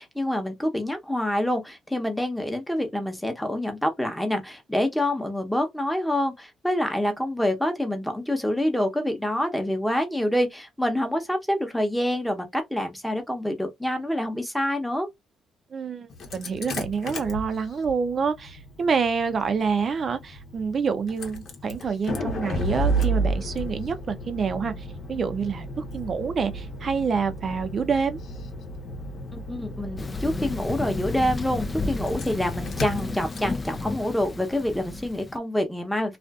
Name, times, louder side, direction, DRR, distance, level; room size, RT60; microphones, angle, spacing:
voice 1, 0.0-15.1 29.3-36.2, left 1 dB, 5° left, 0.8 m, -27 dB
voice 2, 15.7-28.2, right 5 dB, 45° right, 0.5 m, -27 dB
Engine starting, 16.1-35.1, right 1 dB, 65° left, 0.8 m, -33 dB
Thunder, 30.0-35.4, left 3 dB, 25° left, 0.4 m, -33 dB
2.5 x 2.4 x 2.3 m
cardioid pair, 90°, 0 cm